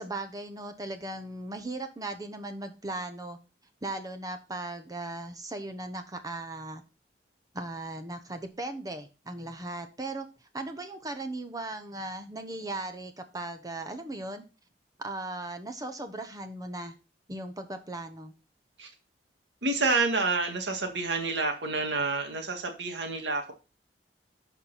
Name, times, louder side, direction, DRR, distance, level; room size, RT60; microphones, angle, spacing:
voice 1, 0.0-3.4 3.8-6.8 7.5-10.3 10.5-14.4 15.0-17.0 17.3-18.3, right 2 dB, 20° right, 7 dB, 0.9 m, -37 dB
voice 2, 19.6-23.5, right 3 dB, 90° right, 4 dB, 1.9 m, -28 dB
12.0 x 4.6 x 4.1 m, 0.31 s
head